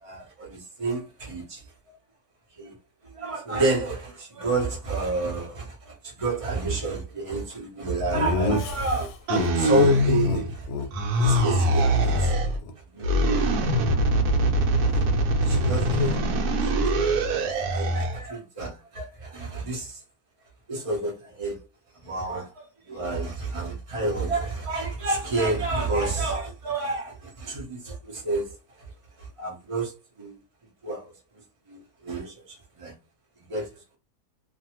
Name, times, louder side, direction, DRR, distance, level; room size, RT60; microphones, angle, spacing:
voice 1, 0.0-1.6 2.6-2.7 3.1-9.1 9.5-10.9 11.2-12.3 12.9-13.5 14.8-15.0 15.4-16.6 17.0-20.0 20.7-21.6 21.9-28.6 29.2-29.9 30.2-30.4 30.8-31.1 31.7-32.9 33.5-33.7, right 2 dB, 40° right, 0.4 m, -29 dB
Laughter, 8.1-9.9 10.2-10.4 10.7-10.9 11.1-12.7, left 2 dB, 70° left, 1.1 m, -29 dB
sound 1, 9.3-10.6 10.9-12.6 13.0-18.2, right 1 dB, 70° right, 1.1 m, -23 dB
2.6 x 2.5 x 2.9 m
omnidirectional pair, 1.8 m